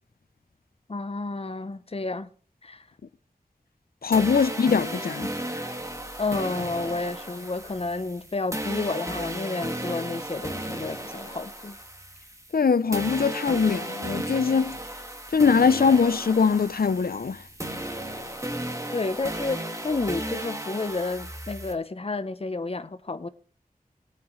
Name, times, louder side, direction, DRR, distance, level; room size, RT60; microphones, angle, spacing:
voice 1, 0.9-2.3 2.6-2.9 4.2-4.3 6.2-11.8 18.9-23.3, left 3 dB, 40° left, 0.6 m, -31 dB
voice 2, 4.0-5.6 12.5-14.8 15.3-17.4, left 5 dB, 85° left, 0.5 m, -22 dB
sound 1, 4.1-12.6 12.9-21.7, right 1 dB, 20° right, 1.8 m, -34 dB
19.5 x 8.8 x 3.1 m
wide cardioid pair, 45°, 15 cm